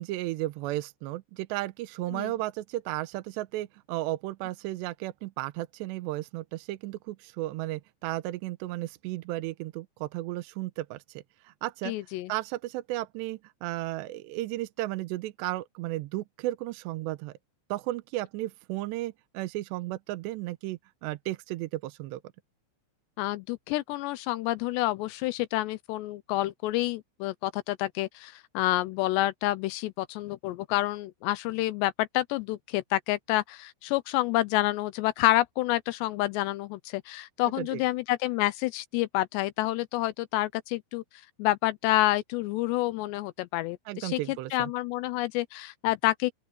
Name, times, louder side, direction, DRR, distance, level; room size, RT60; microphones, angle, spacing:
voice 1, 0.0-11.9 12.3-17.3 17.7-22.2 37.6-37.8 43.9-44.7, right 17 dB, 80° right, 2.6 m, -34 dB
voice 2, 11.9-12.3 23.2-41.0 41.4-46.3, left 17 dB, 85° left, 2.5 m, -28 dB
open air
omnidirectional pair, 5.7 m